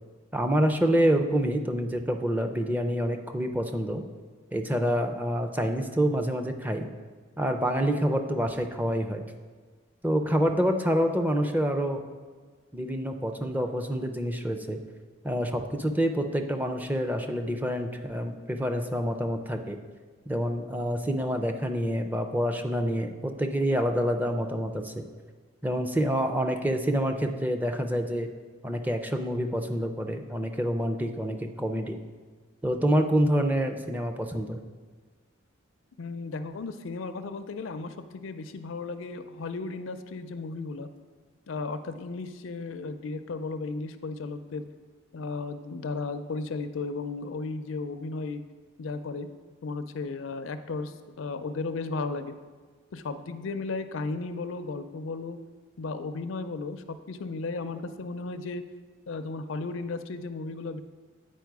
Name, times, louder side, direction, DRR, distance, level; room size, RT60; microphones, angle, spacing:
voice 1, 0.3-4.0 4.5-6.9 7.4-9.2 10.0-12.0 12.7-14.8 15.2-19.8 20.3-25.0 25.6-28.3 28.6-32.0 32.6-34.6, equal, 10° right, 5 dB, 0.4 m, -27 dB
voice 2, 36.0-40.9 41.5-44.6 45.1-48.4 48.8-49.3 49.6-52.3 52.9-55.4 55.8-58.6 59.1-60.8, left 3 dB, 75° left, 10 dB, 0.5 m, -35 dB
9.0 x 4.4 x 4.7 m, 1.5 s
head